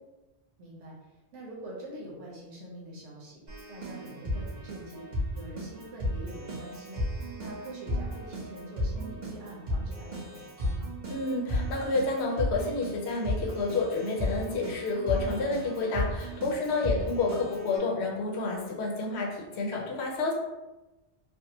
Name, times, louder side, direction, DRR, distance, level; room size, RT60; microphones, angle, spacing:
voice 1, 0.6-10.9 16.8-17.1 17.4-17.5, right 1 dB, 85° right, -4 dB, 1.2 m, -45 dB
Keyboard (musical), 3.5-17.8, left 1 dB, 40° right, 1.1 m, -34 dB
voice 2, 11.1-20.3, left 3 dB, 70° left, -1 dB, 0.9 m, -29 dB
3.4 x 2.1 x 2.8 m, 1.0 s
omnidirectional pair, 1.2 m